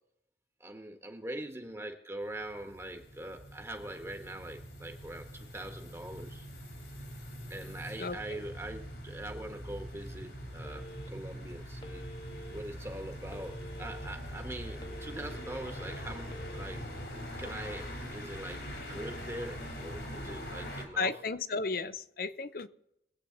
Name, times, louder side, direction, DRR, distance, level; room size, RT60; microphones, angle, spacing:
voice 1, 0.6-6.5 7.5-12.0 12.5-16.9 17.4-18.6 18.9-21.2, right 1 dB, 15° right, 1.4 m, -43 dB
sound 1, 2.2-20.9, equal, 70° left, 3.4 m, -43 dB
voice 2, 8.0-8.4 21.0-22.7, left 4 dB, 55° left, 0.7 m, -34 dB
Telephone, 10.6-11.3 11.8-12.6 13.3-14.1 14.5-15.6 16.2-16.6, equal, 25° left, 1.2 m, -48 dB
22.5 x 8.5 x 4.0 m
head